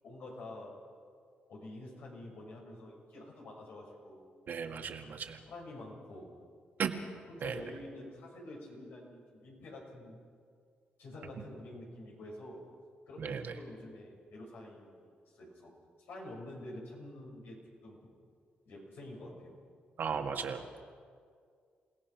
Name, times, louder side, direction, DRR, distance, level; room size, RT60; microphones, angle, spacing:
voice 1, 0.0-0.7 1.5-4.3 5.5-6.3 7.3-10.2 11.0-12.6 13.1-15.0 15.3-15.7 16.1-17.6 17.8-18.0 18.6-19.5, left 1 dB, 80° left, -1 dB, 6.7 m, -47 dB
voice 2, 4.5-5.4 6.8-7.0 7.4-7.6 13.2-13.6 20.0-20.8, right 6 dB, 65° right, 4 dB, 1.8 m, -36 dB
28.0 x 17.5 x 6.0 m, 2.1 s
cardioid pair, 90°, 4 cm